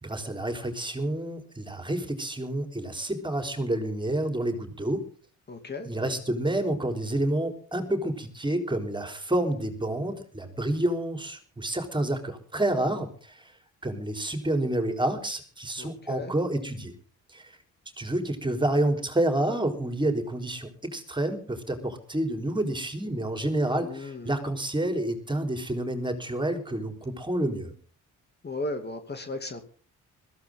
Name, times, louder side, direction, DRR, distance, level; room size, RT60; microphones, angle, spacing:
voice 1, 0.0-5.0 5.8-13.5 13.8-16.9 17.3-17.5 18.0-27.7, right 1 dB, 15° right, 6 dB, 4.0 m, -29 dB
voice 2, 5.5-5.9 15.8-16.3 23.8-24.3 28.4-29.6, left 2 dB, 35° left, 7 dB, 2.5 m, -35 dB
21.5 x 15.5 x 3.8 m, 0.41 s
cardioid pair, 90°, 30 cm